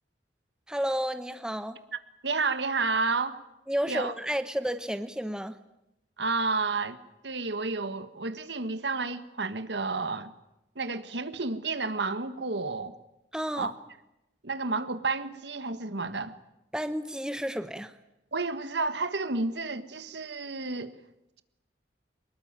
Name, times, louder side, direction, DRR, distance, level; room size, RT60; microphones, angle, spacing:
voice 1, 0.7-1.8 3.7-5.6 13.3-13.7 16.7-18.0, equal, 5° right, 1.1 m, -31 dB
voice 2, 2.2-3.4 3.9-4.1 6.2-7.0 7.2-10.3 10.7-12.9 13.6-13.7 14.4-16.4 18.3-21.0, right 3 dB, 75° right, 1.7 m, -31 dB
25.0 x 21.0 x 9.0 m
head